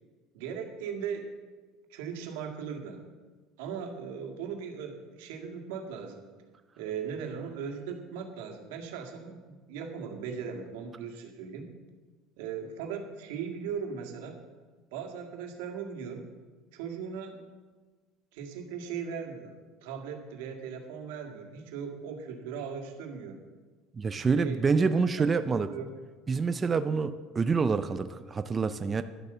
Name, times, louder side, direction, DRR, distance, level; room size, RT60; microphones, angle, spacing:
voice 1, 0.3-1.3 1.9-3.1 3.6-6.2 6.8-11.7 12.4-14.4 14.9-16.3 16.7-17.4 18.3-19.5 19.8-23.4 24.1-25.9, right 6 dB, 90° right, 3 dB, 1.8 m, -38 dB
voice 2, 24.0-25.7 26.3-29.0, right 4 dB, 20° right, 10 dB, 0.4 m, -27 dB
11.5 x 8.1 x 6.7 m, 1.4 s
cardioid pair, 165°, 0 cm